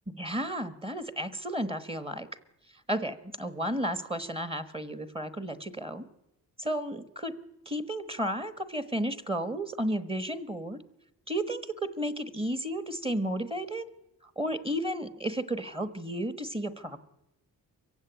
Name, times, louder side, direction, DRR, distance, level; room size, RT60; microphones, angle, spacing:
voice 1, 0.1-2.3 2.9-6.0 6.6-7.3 7.6-10.8 11.3-13.8 14.2-17.0, right 1 dB, 15° right, 12 dB, 1.2 m, -33 dB
24.0 x 15.5 x 9.2 m, 0.92 s
wide cardioid pair, 130°, 36 cm